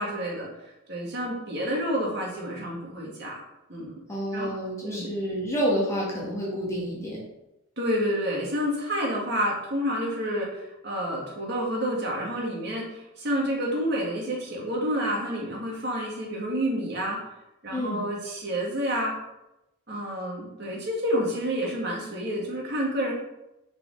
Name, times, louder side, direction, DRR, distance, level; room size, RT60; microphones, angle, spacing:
voice 1, 0.0-3.4 3.7-4.0 4.3-4.5 4.8-5.1 7.8-17.2 17.6-19.1 19.9-23.1, equal, 55° right, -3 dB, 2.2 m, -29 dB
voice 2, 4.1-7.2 17.7-18.0, equal, 15° left, -5 dB, 2.0 m, -29 dB
6.1 x 5.7 x 4.8 m, 0.91 s
head